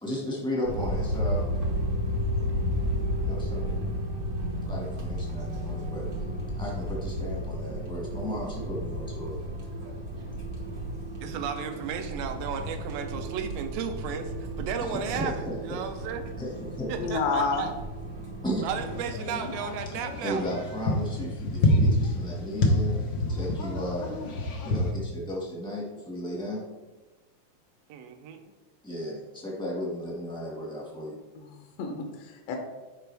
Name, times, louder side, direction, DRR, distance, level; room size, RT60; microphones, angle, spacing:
voice 1, 0.0-1.5 3.2-3.7 4.6-6.1 6.5-10.3 14.9-15.8 16.4-16.9 18.4-18.7 19.9-23.0 23.3-24.2 24.6-26.7 28.8-31.2, equal, 5° left, -5 dB, 0.7 m, -35 dB
sound 1, 0.6-19.0, equal, 60° right, 0.9 m, -33 dB
voice 2, 11.2-16.2 16.9-17.7 18.6-20.5 27.9-28.4, right 7 dB, 75° right, 7 dB, 1.6 m, -34 dB
voice 3, 17.0-17.7 31.4-32.6, left 5 dB, 70° left, 3 dB, 1.7 m, -30 dB
sound 2, 18.7-24.9, left 1 dB, 85° left, 1.0 m, -27 dB
10.5 x 5.0 x 3.4 m, 1.2 s
omnidirectional pair, 3.6 m